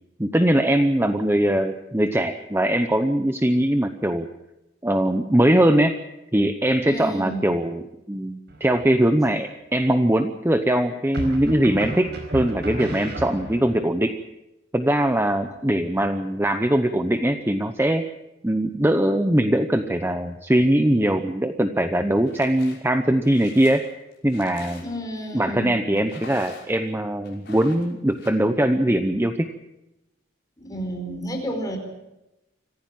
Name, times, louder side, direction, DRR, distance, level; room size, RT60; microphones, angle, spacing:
voice 1, 0.2-4.3 4.8-6.0 6.3-14.1 14.7-18.0 18.4-23.9 24.2-24.8 25.3-29.5, right 1 dB, 10° right, 7 dB, 0.8 m, -21 dB
voice 2, 6.8-7.5 24.8-26.1 30.6-31.8, right 1 dB, 20° left, 3 dB, 4.6 m, -31 dB
sound 1, 8.5-9.1 11.1-13.8, right 1 dB, 50° right, 4.8 m, -33 dB
sound 2, 22.2-22.8 23.2-25.1 26.0-26.9 27.2-28.3, left 4 dB, 50° left, 5.8 m, -45 dB
25.5 x 15.5 x 7.6 m, 0.93 s
head